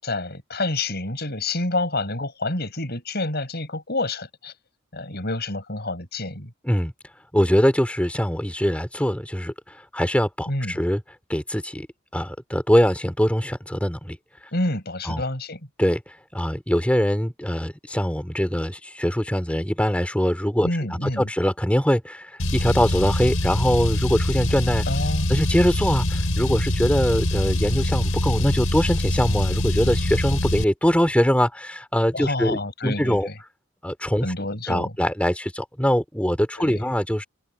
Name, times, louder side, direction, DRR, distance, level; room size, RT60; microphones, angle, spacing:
voice 1, 0.0-4.5 4.9-6.5 10.5-10.8 14.5-15.6 20.6-21.3 24.9-25.3 32.1-33.3 34.2-34.9 36.6-36.9, left 2 dB, 50° left, 7.5 m, -28 dB
voice 2, 7.3-11.0 11.3-11.9 12.1-14.2 15.0-15.2 15.8-16.0 16.3-24.9 25.3-33.3 33.8-34.3 34.7-37.2, equal, 5° left, 2.7 m, -22 dB
Car, 22.4-30.6, left 1 dB, 85° left, 4.5 m, -24 dB
head